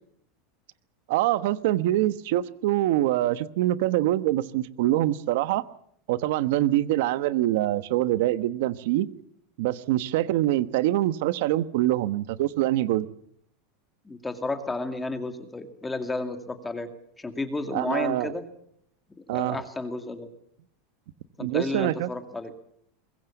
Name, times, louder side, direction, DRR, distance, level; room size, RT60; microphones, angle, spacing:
voice 1, 1.1-5.6 6.1-9.1 9.6-13.1 17.7-18.3 19.3-19.6 21.4-22.1, right 14 dB, 65° right, 14 dB, 1.2 m, -24 dB
voice 2, 14.0-16.9 17.2-18.4 19.3-20.3 21.4-22.5, left 2 dB, 10° left, 7 dB, 2.2 m, -32 dB
24.0 x 22.0 x 7.3 m, 0.69 s
supercardioid pair, 160°, 0 cm